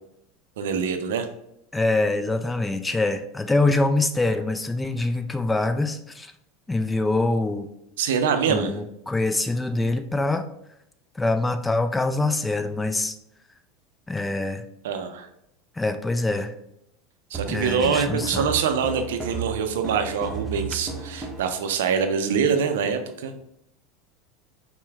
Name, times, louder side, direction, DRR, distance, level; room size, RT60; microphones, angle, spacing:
voice 1, 0.6-1.3 8.0-8.8 14.8-15.3 17.3-23.4, right 6 dB, 75° right, 7 dB, 0.5 m, -24 dB
voice 2, 1.7-6.3 6.7-7.7 8.5-10.5 11.2-13.1 14.1-14.6 15.8-16.5 17.5-18.5, left 2 dB, 10° left, 8 dB, 0.4 m, -24 dB
sound 1, 17.3-21.5, right 5 dB, 5° right, 1.0 m, -34 dB
5.6 x 2.2 x 3.4 m, 0.78 s
hypercardioid pair, 85°, 0 cm